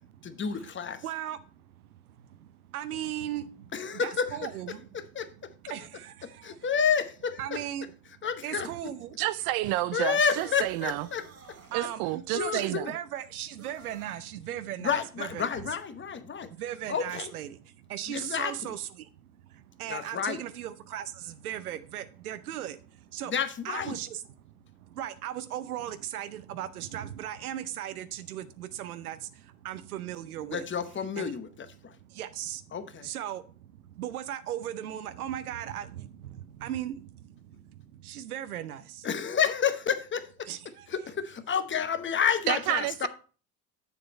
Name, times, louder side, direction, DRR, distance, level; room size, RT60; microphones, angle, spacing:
voice 1, 0.2-1.0 3.7-4.5 4.9-5.5 6.4-7.6 8.2-8.9 9.9-11.2 11.8-11.9 12.3-13.0 14.8-16.5 16.9-17.3 18.1-18.7 19.9-20.4 23.3-24.0 30.5-32.0 32.7-33.1 39.0-40.5 40.9-43.1, left 7 dB, 25° left, 0.9 m, -30 dB
voice 2, 1.0-4.9 5.7-6.6 7.4-7.9 8.4-9.1 11.7-15.5 16.5-23.3 23.6-30.6 31.2-31.3 31.8-39.1 40.5-40.9, right 11 dB, 85° right, 0.7 m, -38 dB
voice 3, 9.2-11.1 11.7-12.9 42.5-43.1, right 17 dB, 55° right, 0.5 m, -30 dB
sound 1, 10.3-11.8 13.6-14.3, right 5 dB, 35° right, 1.6 m, -52 dB
7.1 x 6.8 x 4.1 m
hypercardioid pair, 75°, 43 cm